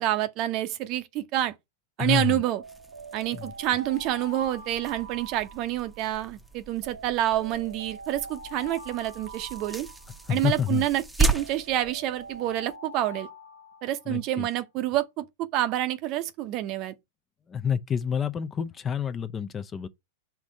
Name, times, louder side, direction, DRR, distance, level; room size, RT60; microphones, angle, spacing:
voice 1, 0.0-1.5 2.0-2.6 3.1-9.9 10.3-13.3 13.8-16.9, right 13 dB, 45° right, 0.7 m, -28 dB
voice 2, 2.0-2.4 3.3-3.4 10.3-10.8 14.1-14.5 17.5-19.9, left 8 dB, 25° left, 0.6 m, -28 dB
Alarm, 2.4-6.1 6.8-10.5 11.2-14.4, right 2 dB, 80° right, 1.0 m, -44 dB
sound 1, 2.6-12.8, right 3 dB, 5° right, 0.8 m, -35 dB
5.9 x 3.5 x 5.2 m
figure-of-eight pair, 100°, 0 cm